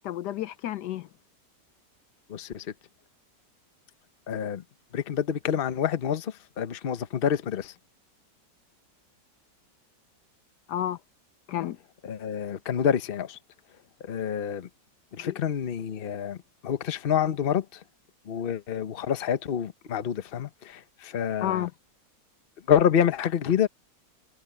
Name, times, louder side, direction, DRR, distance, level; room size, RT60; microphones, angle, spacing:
voice 1, 0.0-1.1 10.7-11.0 11.5-11.8 15.2-15.4 21.4-21.7, left 12 dB, 75° left, 1.2 m, -31 dB
voice 2, 2.3-2.7 4.3-4.6 4.9-7.7 12.0-13.4 14.0-14.7 15.1-16.4 16.6-17.8 18.3-21.7 22.7-23.7, left 8 dB, 40° left, 0.9 m, -27 dB
omnidirectional pair, 1.9 m